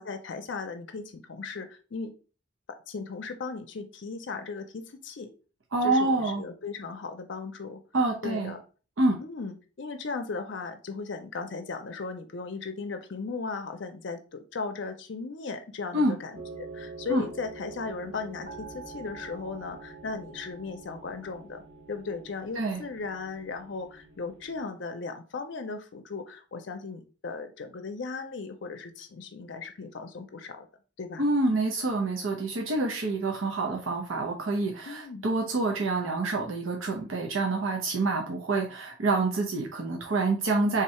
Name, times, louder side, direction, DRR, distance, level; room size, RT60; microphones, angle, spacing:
voice 1, 0.0-2.1 2.9-5.3 5.8-7.8 8.2-8.6 9.2-21.6 21.9-30.7 31.0-31.2 34.9-35.3, left 4 dB, 65° left, 6 dB, 0.5 m, -37 dB
voice 2, 5.7-6.4 7.9-8.5 9.0-9.2 15.9-16.2 17.1-17.2 22.6-22.8 31.2-40.8, right 2 dB, 85° right, 1 dB, 0.7 m, -27 dB
sound 1, 16.3-24.6, right 3 dB, 60° right, 1.4 m, -46 dB
3.7 x 2.7 x 4.3 m, 0.36 s
head